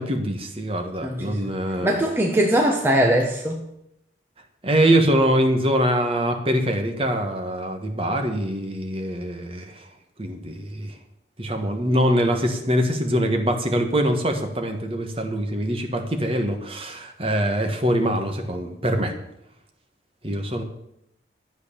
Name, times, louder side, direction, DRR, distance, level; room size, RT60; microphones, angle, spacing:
voice 1, 0.0-2.0 4.6-9.9 10.2-10.9 11.4-19.1 20.2-20.6, equal, 30° right, 5 dB, 1.5 m, -23 dB
voice 2, 1.0-1.4 1.8-3.6, right 1 dB, 10° right, 0 dB, 1.1 m, -21 dB
12.5 x 8.1 x 6.9 m, 0.80 s
head